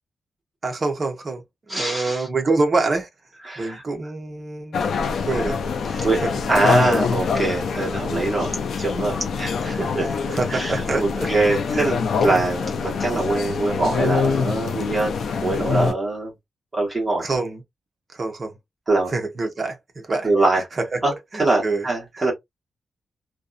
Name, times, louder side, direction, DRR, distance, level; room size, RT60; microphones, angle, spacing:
voice 1, 0.6-3.1 3.6-4.8 5.2-5.6 5.9-6.3 10.0-11.3 11.7-11.9 17.2-17.6 18.1-18.5 19.1-19.8 20.1-20.3 20.5-21.0 21.3-21.9 22.1-22.2, right 3 dB, 30° right, 0.6 m, -26 dB
voice 2, 1.7-2.2 3.4-3.8 6.0-6.2 6.5-10.1 10.5-15.1 15.4-16.3 16.7-17.3 18.9-19.1 20.2-20.6 21.0-22.3, right 2 dB, 15° right, 1.2 m, -23 dB
sound 1, 4.7-15.9, left 5 dB, 70° left, 0.4 m, -25 dB
2.5 x 2.1 x 2.4 m
wide cardioid pair, 180°, 0 cm